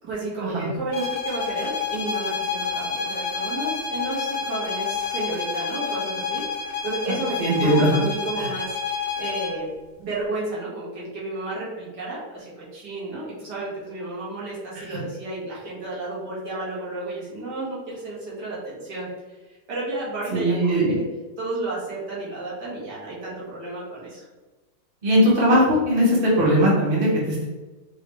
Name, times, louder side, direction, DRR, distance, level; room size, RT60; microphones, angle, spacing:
voice 1, 0.0-9.7 10.0-19.1 19.7-21.0 21.4-24.2, right 2 dB, 80° right, -6 dB, 2.2 m, -32 dB
sound 1, 0.9-9.6, left 5 dB, 65° left, 1.0 m, -29 dB
voice 2, 7.4-7.9 8.4-8.5 14.7-15.0 20.3-20.9 25.0-27.5, equal, 35° right, -5 dB, 1.5 m, -20 dB
5.0 x 3.2 x 3.2 m, 1.2 s
omnidirectional pair, 1.8 m